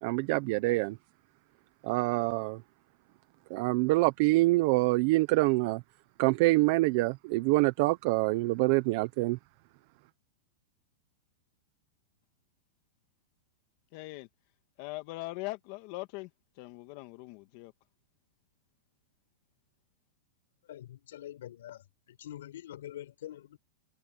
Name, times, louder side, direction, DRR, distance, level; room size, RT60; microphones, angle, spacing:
voice 1, 0.0-1.0 1.8-2.6 3.5-5.8 6.2-9.4, right 21 dB, 40° right, 0.7 m, -26 dB
voice 2, 13.9-14.3 14.8-16.3 16.6-17.7, left 21 dB, 35° left, 1.4 m, -41 dB
voice 3, 20.6-23.6, left 12 dB, 70° left, 4.2 m, -45 dB
supercardioid pair, 175°, 0 cm